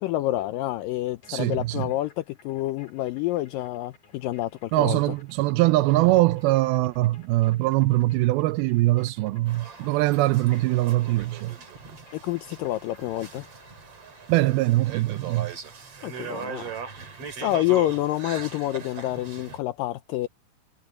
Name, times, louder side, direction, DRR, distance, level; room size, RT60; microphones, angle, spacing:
voice 1, 0.0-5.0 12.1-13.5 16.0-16.7 17.4-20.3, left 15 dB, 85° left, 2.0 m, -28 dB
sound 1, 1.1-13.9, left 4 dB, 40° left, 5.2 m, -58 dB
voice 2, 1.3-1.9 4.7-11.6 14.3-15.5, right 18 dB, 80° right, 2.3 m, -22 dB
sound 2, 9.5-19.6, right 7 dB, 40° right, 3.9 m, -40 dB
Explosion, 13.1-16.1, left 1 dB, 5° left, 3.5 m, -58 dB
omnidirectional pair, 4.7 m